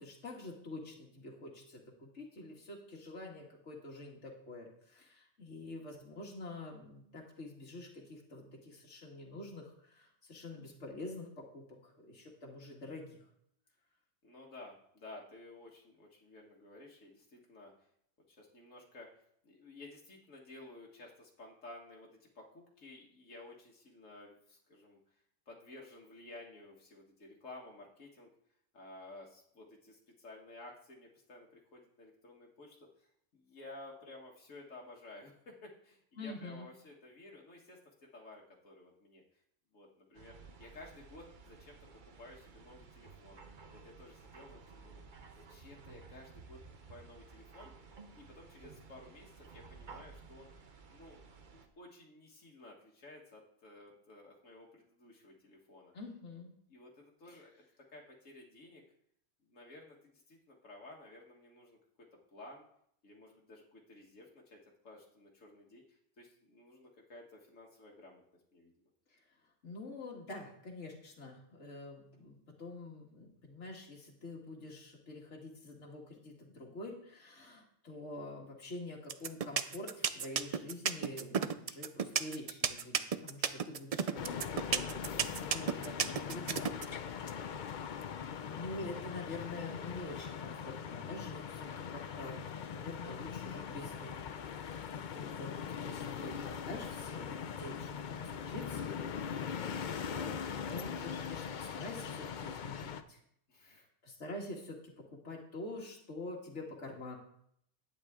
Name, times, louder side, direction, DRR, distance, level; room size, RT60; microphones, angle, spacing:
voice 1, 0.0-13.2 36.2-36.7 55.9-56.6 57.3-57.4 69.6-86.6 87.2-87.7 88.4-98.9 100.0-103.2 103.6-107.2, left 2 dB, 65° left, -1 dB, 2.1 m, -47 dB
voice 2, 14.2-17.7 18.3-25.0 25.5-28.3 28.7-37.8 38.1-39.2 39.7-40.3 40.6-41.8 42.2-43.4 43.7-45.0 45.4-46.6 46.9-47.7 48.2-50.5 50.9-51.2 51.5-55.9 56.7-57.6 57.9-58.8 59.5-61.8 62.3-62.6 63.0-64.6 64.8-68.2 68.5-68.7 77.9-78.0 87.4-87.8 91.2-91.6 103.5-103.8, left 2 dB, 85° left, -2 dB, 1.9 m, -54 dB
sound 1, 40.1-51.7, right 4 dB, 45° right, 1.0 m, -55 dB
sound 2, 79.1-86.8, right 7 dB, 65° right, 0.3 m, -32 dB
sound 3, 84.1-103.0, left 7 dB, 50° left, 0.6 m, -41 dB
11.0 x 8.9 x 3.6 m, 0.69 s
omnidirectional pair, 1.3 m